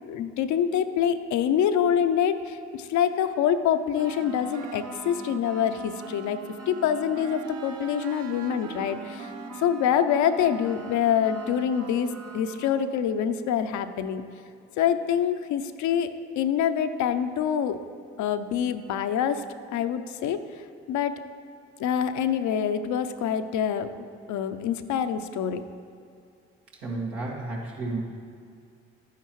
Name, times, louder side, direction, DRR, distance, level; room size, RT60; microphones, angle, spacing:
voice 1, 0.1-6.4 6.7-9.3 9.6-12.1 12.3-14.2 14.8-16.1 16.4-17.8 18.2-19.4 19.7-20.4 20.9-21.2 21.8-23.9 24.3-25.6, left 8 dB, 65° left, 10 dB, 0.6 m, -25 dB
sound 1, 4.0-12.8, right 5 dB, 55° right, 0.8 m, -40 dB
voice 2, 26.8-28.0, right 2 dB, 85° right, -4 dB, 1.9 m, -32 dB
11.0 x 9.4 x 3.1 m, 2.4 s
hypercardioid pair, 45°, 31 cm